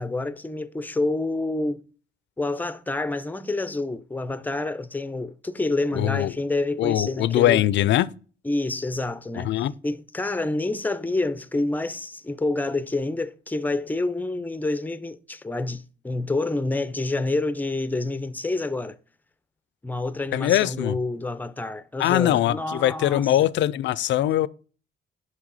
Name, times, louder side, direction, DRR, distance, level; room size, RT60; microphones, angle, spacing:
voice 1, 0.0-1.8 2.4-7.7 8.4-9.5 9.8-19.0 19.8-23.3, left 2 dB, 10° left, 0.5 m, -28 dB
voice 2, 5.9-6.3 6.8-8.1 9.4-9.7 20.3-21.0 22.0-24.5, left 13 dB, 70° left, 0.4 m, -22 dB
6.1 x 5.5 x 4.0 m
cardioid pair, 90°, 20 cm